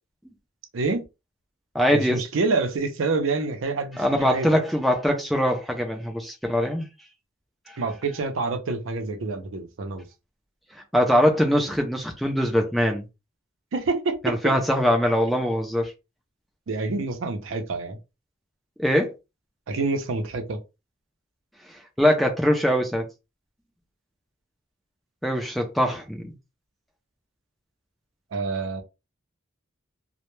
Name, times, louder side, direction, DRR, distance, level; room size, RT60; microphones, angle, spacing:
voice 1, 0.7-1.0 1.9-4.5 7.8-10.1 13.7-14.5 16.7-18.0 19.7-20.6 28.3-28.8, right 3 dB, 85° right, 0.5 m, -27 dB
voice 2, 1.7-2.2 4.0-6.9 10.9-13.1 14.2-15.9 18.8-19.1 22.0-23.0 25.2-26.3, equal, ahead, 0.4 m, -22 dB
2.1 x 2.0 x 3.0 m
head